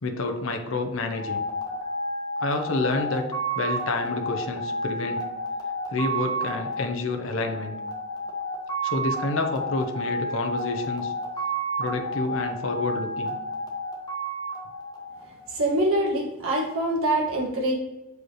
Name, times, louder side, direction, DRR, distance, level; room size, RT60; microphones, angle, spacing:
voice 1, 0.0-1.4 2.4-3.3 3.6-5.2 5.9-7.8 8.8-11.1 11.8-13.4, left 3 dB, 60° left, 5 dB, 0.7 m, -28 dB
sound 1, 1.1-15.6, right 1 dB, 20° left, 1.2 m, -31 dB
voice 2, 15.5-17.7, right 1 dB, 65° right, -2 dB, 1.6 m, -24 dB
6.5 x 5.0 x 3.0 m, 1.1 s
head